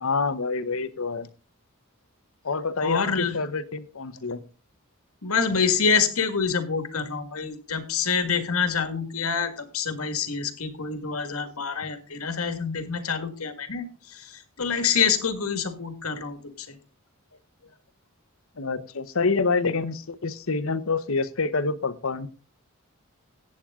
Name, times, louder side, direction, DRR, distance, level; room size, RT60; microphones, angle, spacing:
voice 1, 0.0-1.3 2.4-4.4 18.6-22.3, left 4 dB, 70° left, 13 dB, 0.9 m, -27 dB
voice 2, 2.8-3.4 5.2-16.8, left 6 dB, 85° left, 9 dB, 1.8 m, -27 dB
15.0 x 8.7 x 3.6 m, 0.36 s
head